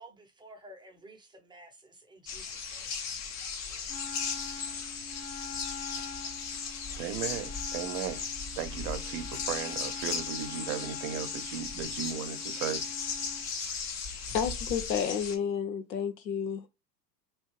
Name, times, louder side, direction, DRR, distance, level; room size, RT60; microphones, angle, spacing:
voice 1, 0.0-2.9 3.6-3.9, right 1 dB, 10° right, 0.8 m, -53 dB
sound 1, 2.3-15.4, left 6 dB, 30° left, 0.8 m, -36 dB
Wind instrument woodwind instrument, 3.9-13.5, left 5 dB, 15° left, 0.3 m, -46 dB
voice 2, 7.0-8.2 8.6-12.8, right 10 dB, 45° right, 0.8 m, -36 dB
voice 3, 14.3-16.7, left 7 dB, 85° left, 1.0 m, -31 dB
3.2 x 2.8 x 3.1 m
hypercardioid pair, 90°, 50 cm